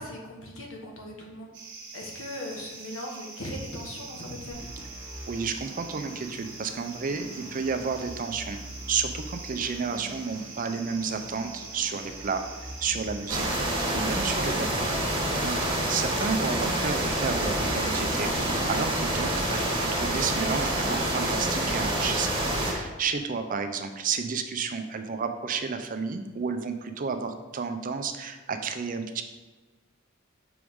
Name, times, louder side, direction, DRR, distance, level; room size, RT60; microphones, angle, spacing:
voice 1, 0.0-1.5 1.9-4.7 14.3-14.4 15.3-15.6, left 1 dB, 75° left, 0 dB, 1.2 m, -39 dB
sound 1, 1.5-13.5, right 4 dB, 60° right, 1.4 m, -44 dB
sound 2, 4.5-19.9, equal, ahead, 1.7 m, -44 dB
voice 2, 5.3-8.6 8.9-15.6 15.9-18.3 18.6-29.2, right 5 dB, 40° right, 8 dB, 0.5 m, -31 dB
sound 3, 13.3-22.7, right 1 dB, 25° right, 1.5 m, -27 dB
6.1 x 4.6 x 3.6 m, 1.3 s
head